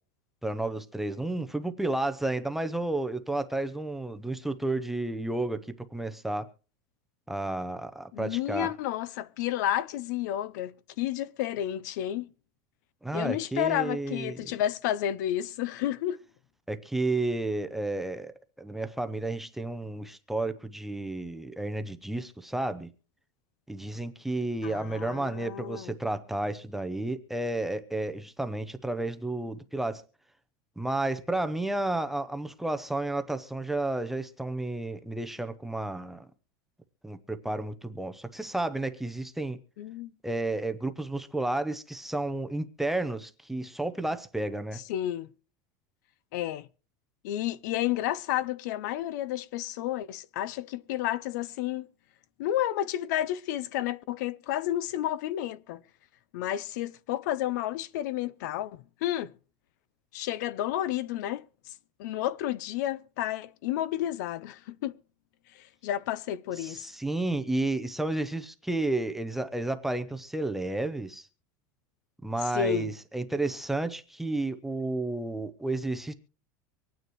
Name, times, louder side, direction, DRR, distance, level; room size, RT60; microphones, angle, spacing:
voice 1, 0.4-5.6 5.9-6.5 7.3-8.7 13.0-14.4 16.7-22.9 23.7-30.0 30.8-36.3 37.0-39.6 40.2-44.8 66.6-71.3 72.2-76.1, right 2 dB, ahead, 0.5 m, -31 dB
voice 2, 8.1-12.3 13.1-16.2 24.6-26.0 39.8-40.1 44.7-45.3 46.3-46.7 47.2-51.9 52.4-55.8 56.3-59.3 60.1-61.4 62.0-65.0 65.5-66.9 72.5-72.9, left 12 dB, 65° left, 0.6 m, -31 dB
25.0 x 9.4 x 3.1 m
supercardioid pair, 175°, 11 cm